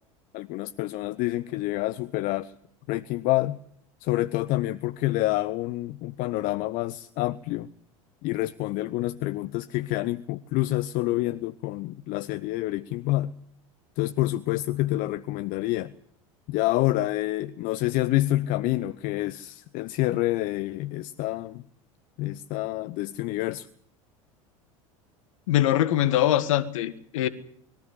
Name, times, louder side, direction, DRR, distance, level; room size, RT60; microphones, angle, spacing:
voice 1, 0.3-2.5 2.9-3.6 4.0-7.7 8.2-13.3 14.0-15.9 16.5-21.6 22.2-23.7, left 17 dB, 55° left, 0.9 m, -27 dB
voice 2, 25.5-27.3, left 13 dB, 70° left, 1.8 m, -23 dB
21.5 x 14.5 x 9.9 m
hypercardioid pair, 85°, 17 cm